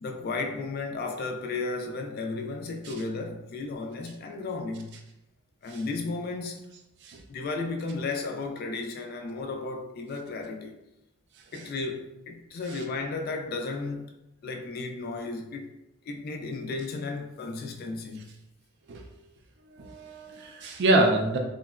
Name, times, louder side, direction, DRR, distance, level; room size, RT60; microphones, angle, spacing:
voice 1, 0.0-5.0 5.6-6.6 7.3-10.8 11.5-14.1 14.4-15.7 16.0-18.3, left 3 dB, 45° left, 0.3 m, -34 dB
voice 2, 19.7-21.4, right 2 dB, 55° right, 0.4 m, -25 dB
3.7 x 2.1 x 2.3 m
head